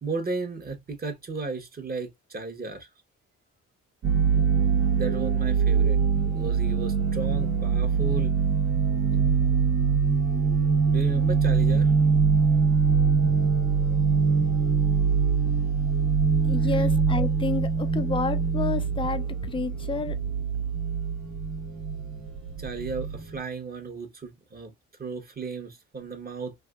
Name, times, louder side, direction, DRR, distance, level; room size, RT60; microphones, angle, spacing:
voice 1, 0.0-2.9 4.9-6.0 6.2-8.4 9.1-9.4 10.8-11.9 16.7-16.9 22.6-24.7 25.0-26.5, right 4 dB, 30° right, 1.0 m, -35 dB
sound 1, 4.0-23.4, right 5 dB, 70° right, 1.2 m, -23 dB
voice 2, 16.4-20.2, left 5 dB, 20° left, 0.4 m, -30 dB
3.4 x 2.6 x 2.4 m
cardioid pair, 90°, 30 cm